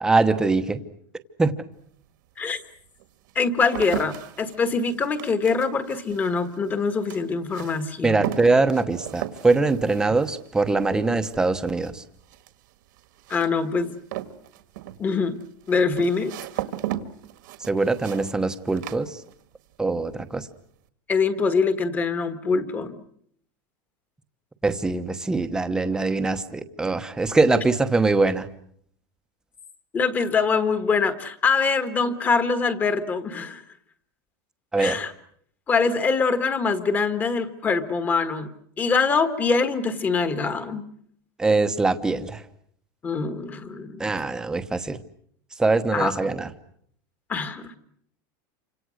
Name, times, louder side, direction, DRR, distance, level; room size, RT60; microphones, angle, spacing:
voice 1, 0.0-0.8 1.4-1.5 8.0-12.0 17.6-19.2 19.8-20.5 24.6-28.5 34.7-35.0 41.4-42.4 44.0-45.0 45.6-46.5, right 3 dB, 5° right, 9 dB, 1.0 m, -22 dB
sound 1, 1.8-1.9 2.6-19.7 20.0-20.6, right 13 dB, 65° right, 1.8 m, -37 dB
voice 2, 3.3-8.3 13.3-13.9 15.0-15.4 15.7-16.3 21.1-22.9 29.9-33.6 34.8-35.1 35.7-38.5 38.8-40.8 43.0-44.0 45.9-46.1 47.3-47.8, left 4 dB, 15° left, 10 dB, 1.4 m, -24 dB
28.5 x 26.0 x 6.4 m, 0.66 s
supercardioid pair, 175°, 11 cm